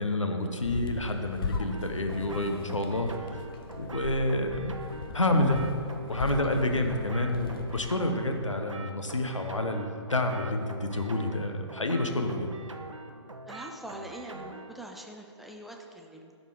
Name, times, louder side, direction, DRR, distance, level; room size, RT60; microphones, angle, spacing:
voice 1, 0.0-3.1 3.8-4.7 5.1-5.6 6.1-12.5, left 1 dB, 90° left, 5 dB, 1.0 m, -28 dB
sound 1, 0.6-8.4, left 4 dB, 50° left, 0.8 m, -38 dB
sound 2, 1.7-14.9, right 2 dB, 85° right, 0.8 m, -44 dB
voice 2, 13.5-16.4, right 1 dB, ahead, 1 dB, 0.3 m, -44 dB
12.0 x 4.3 x 4.7 m, 2.4 s
figure-of-eight pair, 130°, 16 cm